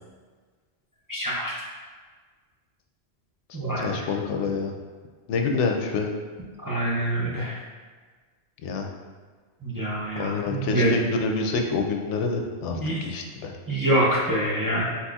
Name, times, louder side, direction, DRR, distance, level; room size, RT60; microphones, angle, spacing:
voice 1, 1.1-1.5 3.5-4.0 6.6-7.6 9.6-10.9 12.7-13.0 13.7-14.8, right 1 dB, 25° right, -7 dB, 0.5 m, -25 dB
voice 2, 3.8-4.7 5.3-6.1 8.6-8.9 10.2-13.5, left 4 dB, 90° left, 3 dB, 0.9 m, -27 dB
4.3 x 4.1 x 2.3 m, 1.5 s
omnidirectional pair, 1.2 m